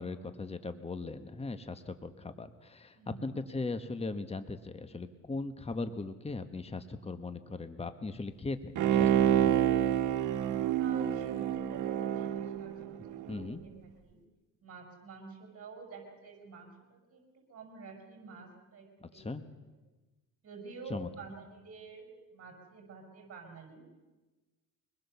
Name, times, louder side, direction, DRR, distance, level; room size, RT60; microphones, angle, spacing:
voice 1, 0.0-9.8 13.3-13.6 19.0-19.4 20.9-21.1, left 3 dB, 20° left, 10 dB, 1.4 m, -39 dB
voice 2, 2.9-3.3 10.7-13.7 14.0-14.2 14.6-17.2 17.5-19.3 20.4-23.8, right 4 dB, 50° right, 2 dB, 6.4 m, -49 dB
Bowed string instrument, 8.8-13.4 13.8-13.9, right 10 dB, 85° right, 1.4 m, -28 dB
24.0 x 20.5 x 7.0 m, 1.2 s
cardioid pair, 90°, 30 cm